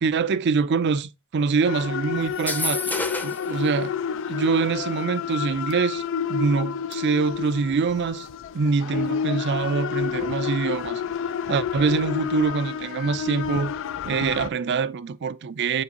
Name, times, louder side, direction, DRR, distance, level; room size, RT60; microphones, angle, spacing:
voice 1, 0.0-3.0 3.2-3.9 4.3-6.0 6.3-8.3 8.5-11.0 11.5-13.7 14.0-15.8, right 5 dB, 50° right, 0.4 m, -24 dB
sound 1, 1.6-14.5, left 7 dB, 60° left, 0.4 m, -30 dB
sound 2, 2.3-3.5, left 2 dB, 10° left, 0.7 m, -28 dB
8.4 x 4.4 x 2.9 m
head